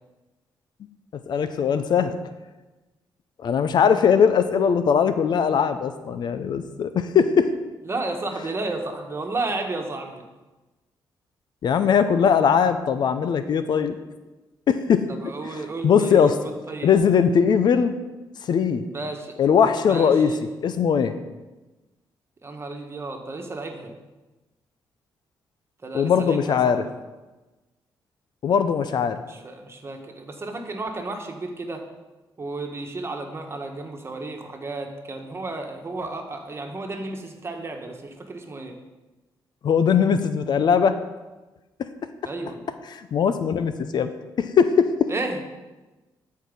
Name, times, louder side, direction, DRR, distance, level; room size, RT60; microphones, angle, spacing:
voice 1, 1.3-2.2 3.4-7.5 11.6-14.0 14.7-15.0 15.4-16.4 16.8-17.9 18.5-18.8 19.4-20.3 20.6-21.1 25.9-26.8 28.4-29.2 39.6-40.9 42.9-44.1 44.4-44.9, left 7 dB, 65° left, 10 dB, 0.6 m, -20 dB
voice 2, 7.9-10.2 15.1-16.9 18.9-19.3 19.9-20.4 22.4-23.9 25.8-26.8 29.3-31.8 32.4-38.8 42.2-42.6 45.1-45.5, right 2 dB, 30° right, 3 dB, 1.5 m, -32 dB
13.0 x 4.7 x 5.3 m, 1.1 s
cardioid pair, 85°, 8 cm